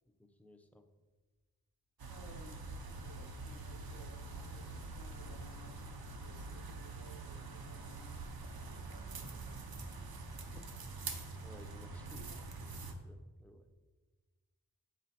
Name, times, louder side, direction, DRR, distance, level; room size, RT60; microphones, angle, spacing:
voice 1, 0.1-0.9 10.5-10.7 11.4-12.3 12.6-13.7, left 1 dB, 5° left, 6 dB, 0.6 m, -58 dB
sound 1, 2.0-12.9, right 3 dB, 70° right, 0.8 m, -45 dB
voice 2, 2.1-10.0 12.1-12.4, equal, 65° left, 3 dB, 0.9 m, -59 dB
7.4 x 3.9 x 4.3 m, 1.3 s
cardioid pair, 55°, 37 cm